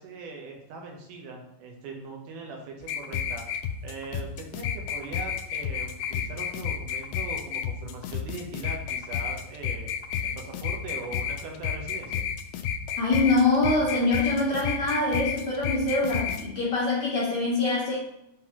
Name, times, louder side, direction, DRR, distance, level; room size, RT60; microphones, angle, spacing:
voice 1, 0.0-3.5 3.8-9.9 10.2-12.2, right 4 dB, 80° right, 1 dB, 2.4 m, -41 dB
sound 1, 2.8-16.4, left 8 dB, 90° left, 2.2 m, -31 dB
voice 2, 13.0-18.0, left 2 dB, 55° left, -5 dB, 1.7 m, -24 dB
9.2 x 3.9 x 2.9 m, 0.82 s
omnidirectional pair, 3.7 m